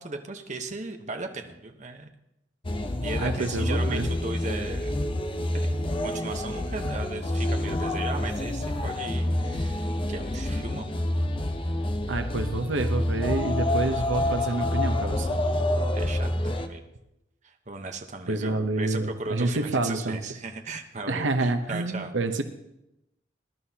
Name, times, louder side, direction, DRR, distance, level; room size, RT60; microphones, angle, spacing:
voice 1, 0.0-2.1 3.0-5.0 5.5-5.7 6.0-11.1 15.9-16.8 17.4-22.1, right 3 dB, 40° right, 5 dB, 1.0 m, -37 dB
sound 1, 2.6-16.7, left 1 dB, 25° left, 0.7 m, -28 dB
voice 2, 3.2-4.1 12.1-15.4 18.3-20.2 21.1-22.4, right 2 dB, 75° right, 7 dB, 0.8 m, -28 dB
20.5 x 11.0 x 2.8 m, 0.89 s
head